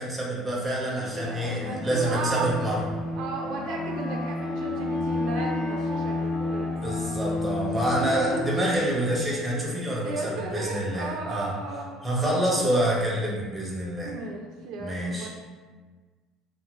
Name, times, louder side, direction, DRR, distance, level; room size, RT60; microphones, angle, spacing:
voice 1, 0.0-2.9 6.8-11.5 12.0-14.1 14.8-15.3, right 1 dB, 5° right, -4 dB, 0.6 m, -27 dB
Bowed string instrument, 1.0-9.5, left 2 dB, 40° left, 0.4 m, -31 dB
voice 2, 1.0-2.6 3.2-7.0 8.0-8.5 10.0-12.7 14.0-15.3, right 3 dB, 60° right, 0 dB, 0.4 m, -34 dB
Wind instrument woodwind instrument, 2.9-9.1, right 1 dB, 70° left, 0.8 m, -41 dB
2.6 x 2.5 x 2.9 m, 1.4 s
cardioid pair, 150°, 0 cm